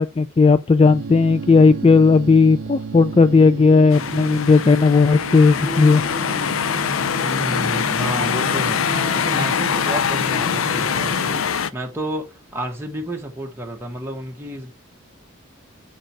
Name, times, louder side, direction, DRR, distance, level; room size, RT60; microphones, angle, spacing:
voice 1, 0.0-6.0, left 4 dB, 30° left, 0.3 m, -15 dB
sound 1, 0.8-11.4, right 4 dB, 70° right, 0.5 m, -34 dB
sound 2, 3.9-11.7, left 7 dB, 80° left, 0.5 m, -23 dB
sound 3, 5.6-11.1, equal, 50° left, 5.6 m, -37 dB
voice 2, 7.2-8.9 9.1-14.7, right 1 dB, 10° right, 1.6 m, -31 dB
7.3 x 5.0 x 4.7 m
head